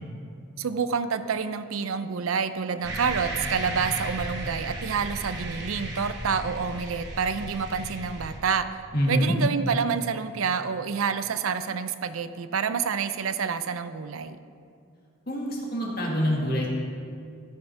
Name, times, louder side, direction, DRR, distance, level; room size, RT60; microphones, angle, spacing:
voice 1, 0.6-8.7 9.1-14.4, right 6 dB, 85° right, 12 dB, 0.5 m, -28 dB
sound 1, 2.8-8.4, right 1 dB, 50° right, 1.2 m, -35 dB
voice 2, 8.9-9.3 15.3-16.7, equal, 45° left, -2 dB, 2.0 m, -25 dB
13.5 x 6.5 x 5.8 m, 2.4 s
head